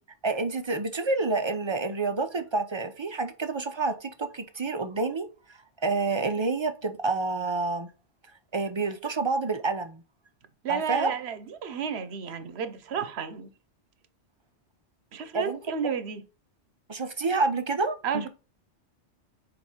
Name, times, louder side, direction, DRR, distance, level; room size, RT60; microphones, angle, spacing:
voice 1, 0.2-5.3 5.8-7.9 8.5-10.0 10.7-11.1 15.3-15.6 16.9-18.3, right 3 dB, 35° right, 0.5 m, -28 dB
voice 2, 10.6-13.5 15.1-16.2 18.0-18.3, right 7 dB, 70° right, 1.0 m, -32 dB
4.9 x 3.9 x 5.5 m
omnidirectional pair, 1.2 m